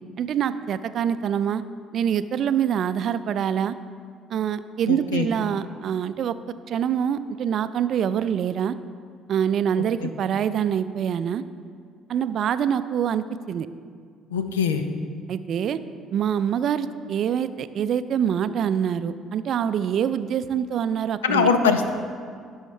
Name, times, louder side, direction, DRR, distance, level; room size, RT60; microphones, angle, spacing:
voice 1, 0.2-1.6 1.9-3.8 4.3-6.3 6.7-8.8 9.3-11.4 12.1-13.7 15.3-15.8 16.1-21.5, right 8 dB, 55° right, 13 dB, 0.4 m, -25 dB
voice 2, 4.9-5.3 14.3-14.8 21.2-21.9, left 6 dB, 80° left, 8 dB, 0.6 m, -22 dB
17.5 x 6.4 x 3.3 m, 2.1 s
hypercardioid pair, 50°, 0 cm